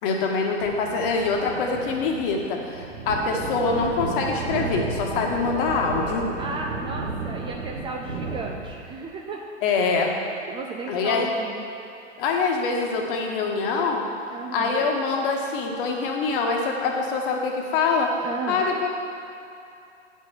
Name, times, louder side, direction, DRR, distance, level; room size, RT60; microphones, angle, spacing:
voice 1, 0.0-6.3 9.6-10.1 10.9-11.3 12.2-14.0 14.5-18.1 18.5-18.9, left 4 dB, 45° left, 1 dB, 1.5 m, -24 dB
sound 1, 0.6-9.0, right 3 dB, 75° right, 1.2 m, -33 dB
voice 2, 6.4-9.4 10.5-11.6 14.3-14.8 18.2-18.7, right 4 dB, 15° right, 0 dB, 0.4 m, -34 dB
9.5 x 5.7 x 6.1 m, 2.6 s
figure-of-eight pair, 100°, 36 cm